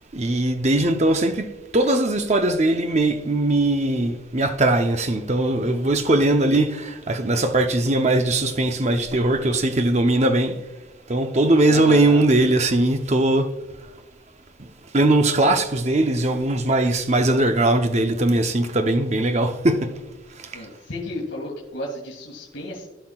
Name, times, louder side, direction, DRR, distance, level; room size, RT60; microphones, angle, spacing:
voice 1, 0.1-10.6 11.1-13.5 14.9-19.9 20.4-20.6, right 2 dB, 35° right, 0.7 m, -20 dB
voice 2, 11.7-12.3 20.5-22.9, left 1 dB, 80° left, 2.1 m, -33 dB
16.0 x 5.7 x 2.4 m
head